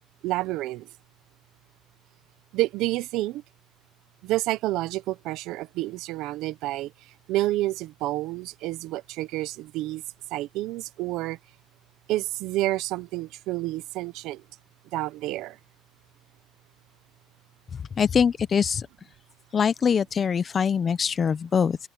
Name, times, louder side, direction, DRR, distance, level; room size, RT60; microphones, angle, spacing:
voice 1, 0.2-0.9 2.5-3.4 4.2-6.9 7.3-10.0 10.3-11.4 12.1-14.4 14.9-15.6, right 17 dB, 80° right, 0.8 m, -29 dB
voice 2, 18.0-18.9 19.5-21.8, left 7 dB, 35° left, 1.0 m, -23 dB
cardioid pair, 105°, 0 cm